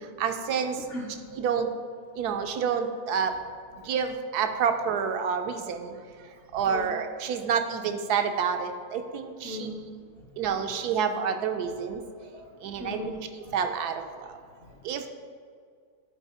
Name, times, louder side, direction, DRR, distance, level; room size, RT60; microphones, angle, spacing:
voice 1, 0.2-0.8 1.3-1.7 2.2-3.3 3.9-5.9 6.5-9.7 10.4-12.0 12.6-13.2 13.5-14.0 14.8-15.1, right 7 dB, 80° right, 7 dB, 1.1 m, -28 dB
voice 2, 0.8-1.4 6.5-6.9 9.4-9.9 10.2-10.3 12.0-13.5 14.4-14.8, left 2 dB, 55° left, -1 dB, 0.7 m, -40 dB
10.5 x 4.2 x 4.2 m, 2.1 s
omnidirectional pair, 1.7 m